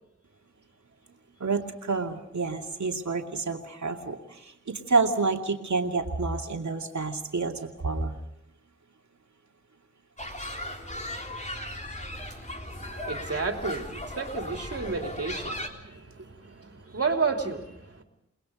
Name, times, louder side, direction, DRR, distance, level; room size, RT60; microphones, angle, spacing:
voice 1, 1.4-8.2, right 4 dB, 70° right, 3 dB, 2.5 m, -29 dB
sound 1, 10.2-15.7, left 1 dB, 25° left, 3.5 m, -37 dB
voice 2, 12.8-18.0, right 4 dB, 55° right, 3 dB, 3.1 m, -32 dB
29.5 x 20.5 x 5.2 m, 0.81 s
wide cardioid pair, 65°, 29 cm